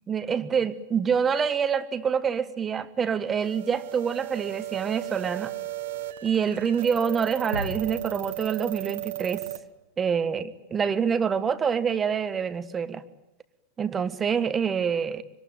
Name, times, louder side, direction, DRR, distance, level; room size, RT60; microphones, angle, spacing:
voice 1, 0.1-5.5 6.2-9.4 10.0-13.0 13.8-15.2, right 7 dB, 20° right, 13 dB, 1.5 m, -26 dB
sound 1, 3.4-9.6, right 16 dB, 55° right, 1.7 m, -35 dB
sound 2, 7.5-9.5 9.8-10.0, equal, 85° right, 1.5 m, -38 dB
25.5 x 24.5 x 9.1 m, 0.87 s
figure-of-eight pair, 90°, 0 cm